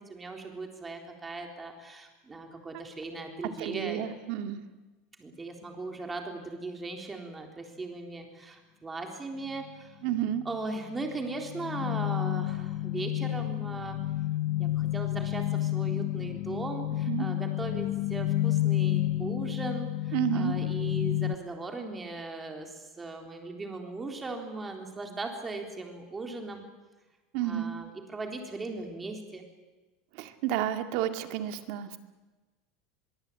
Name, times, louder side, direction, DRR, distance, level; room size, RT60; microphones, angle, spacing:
voice 1, 0.0-4.1 5.2-10.0 10.5-14.0 14.6-26.6 27.4-29.4, right 3 dB, 10° right, 3 dB, 3.7 m, -38 dB
voice 2, 3.6-4.6 10.0-10.4 17.1-17.3 20.1-20.5 27.3-27.7 30.1-32.0, right 11 dB, 55° right, 8 dB, 2.1 m, -31 dB
sound 1, 9.5-9.7 10.1-21.4, left 14 dB, 50° left, 0.9 m, -30 dB
23.5 x 23.0 x 9.1 m, 1.2 s
supercardioid pair, 160°, 0 cm